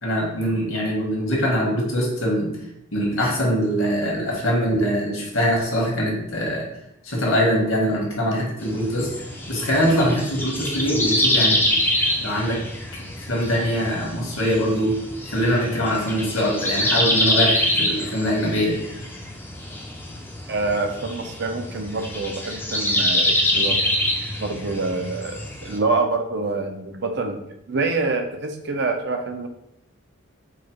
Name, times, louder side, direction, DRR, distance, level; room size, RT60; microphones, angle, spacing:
voice 1, 0.0-2.5 2.9-6.6 7.0-9.1 9.5-11.7 12.2-12.6 13.3-18.8, equal, 75° left, -3 dB, 1.4 m, -23 dB
sound 1, 8.6-25.8, left 1 dB, 10° left, 0.4 m, -25 dB
voice 2, 20.5-23.9 24.4-27.4 27.7-29.5, right 3 dB, 50° right, 5 dB, 0.6 m, -26 dB
4.7 x 2.1 x 4.5 m, 0.79 s
head